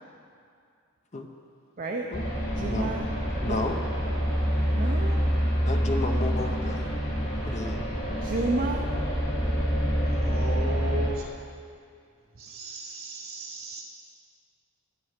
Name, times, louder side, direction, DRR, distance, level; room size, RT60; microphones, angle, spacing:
voice 1, 1.8-2.1 2.6-3.1 3.4-3.6 4.8-5.2 8.2-8.8, right 2 dB, 40° right, 1 dB, 0.6 m, -30 dB
sound 1, 2.1-11.1, equal, 50° left, 3.4 m, -27 dB
voice 2, 2.6-2.9 3.3-3.8 5.7-6.9 7.4-7.8, left 2 dB, 30° left, 4 dB, 0.7 m, -32 dB
voice 3, 10.1-11.3 12.4-13.8, right 2 dB, 65° right, -4 dB, 2.2 m, -36 dB
11.5 x 8.0 x 5.8 m, 2.3 s
head